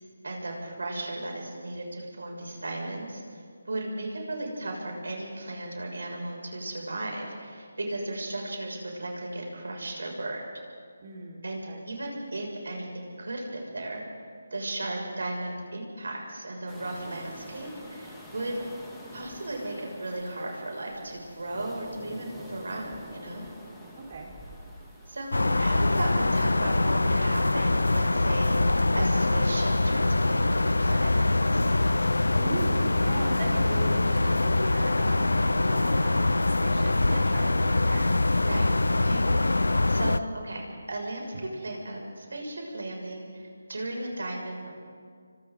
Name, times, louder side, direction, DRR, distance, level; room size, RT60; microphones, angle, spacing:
voice 1, 0.2-10.4 11.4-14.0 14.5-18.6 19.1-23.4 25.1-31.7 38.4-39.4 39.6-44.7, right 1 dB, 75° right, 0 dB, 6.5 m, -36 dB
voice 2, 11.0-11.8 24.1-24.3 32.4-38.1, right 3 dB, 40° right, -1 dB, 4.7 m, -38 dB
sound 1, 16.7-26.1, equal, 5° left, 2.5 m, -47 dB
sound 2, 25.3-40.2, left 2 dB, 85° left, 0.7 m, -24 dB
28.0 x 24.5 x 4.0 m, 2.1 s
figure-of-eight pair, 160°, 0 cm